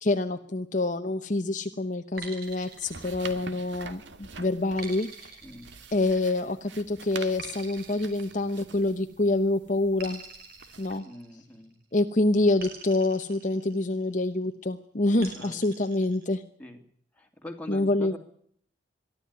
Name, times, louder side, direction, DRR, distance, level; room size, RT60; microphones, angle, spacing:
voice 1, 0.0-5.4 5.9-10.2 10.8-11.0 11.9-16.4 17.7-18.2, left 2 dB, 40° left, 7 dB, 0.9 m, -26 dB
sound 1, 2.2-3.8 4.8-6.4 7.4-9.1 10.0-11.7 12.6-14.1 15.2-16.3, right 4 dB, 50° right, 5.5 m, -45 dB
sound 2, 2.4-11.0, right 4 dB, 65° right, 2.0 m, -46 dB
voice 2, 5.4-5.7 11.0-11.8 15.3-15.6 16.6-16.8 17.1-18.2, left 1 dB, 5° left, 2 dB, 2.7 m, -43 dB
23.0 x 13.0 x 9.8 m, 0.66 s
head